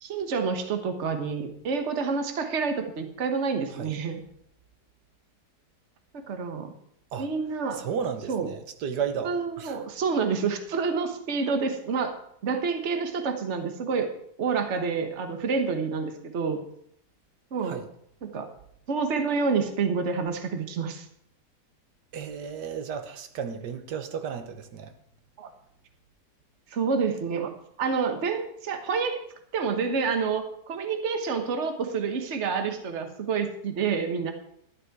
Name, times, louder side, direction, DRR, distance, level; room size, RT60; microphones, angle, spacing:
voice 1, 0.0-4.2 6.1-6.7 7.2-7.9 8.3-8.5 9.2-14.1 14.4-16.6 17.5-17.8 18.2-18.5 18.9-21.1 25.4-25.5 26.7-29.2 29.5-34.3, right 5 dB, 45° right, 1.4 m, -28 dB
voice 2, 7.8-9.8 17.6-17.9 22.1-24.9, right 7 dB, 80° right, 1.6 m, -33 dB
12.5 x 10.5 x 4.6 m
omnidirectional pair, 1.8 m